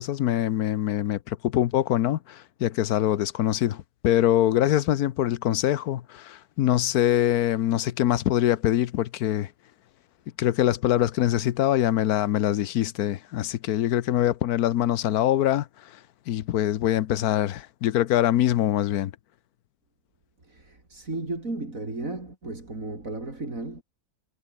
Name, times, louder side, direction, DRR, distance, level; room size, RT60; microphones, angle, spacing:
voice 1, 0.0-9.5 10.4-16.0 16.3-19.1, left 12 dB, 80° left, 1.3 m, -24 dB
voice 2, 20.4-23.8, right 2 dB, 60° right, 5.4 m, -34 dB
omnidirectional pair, 1.6 m